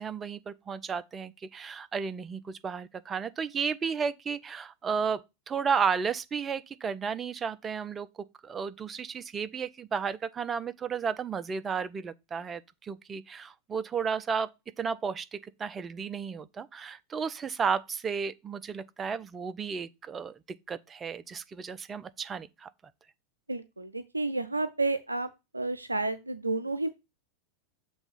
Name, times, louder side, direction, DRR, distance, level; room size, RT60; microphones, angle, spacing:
voice 1, 0.0-14.5 14.8-22.7, right 6 dB, 20° right, 0.5 m, -33 dB
voice 2, 23.5-25.3 25.5-26.9, right 2 dB, 80° right, 0.4 m, -30 dB
7.1 x 3.4 x 5.7 m
figure-of-eight pair, 90°, 0 cm